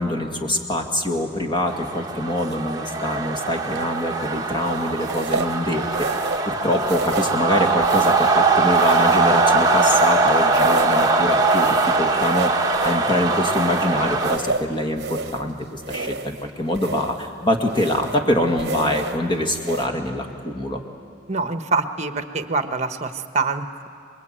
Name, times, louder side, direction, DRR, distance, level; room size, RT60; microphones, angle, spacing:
voice 1, 0.0-20.8, left 1 dB, 25° left, 3 dB, 2.0 m, -24 dB
sound 1, 1.7-14.4, right 3 dB, 20° right, 1.3 m, -21 dB
sound 2, 3.7-4.1 5.0-5.6 5.9-6.5 6.8-7.5 7.8-8.4 8.7-10.2 10.5-11.1 11.5-13.1 13.5-15.5 15.8-16.4 16.7-17.3 17.7-18.2 18.6-19.2 19.6-19.9, right 3 dB, 55° right, 0.9 m, -30 dB
voice 2, 21.3-23.9, right 4 dB, 35° right, 8 dB, 1.1 m, -25 dB
27.5 x 21.5 x 9.0 m, 2.3 s
head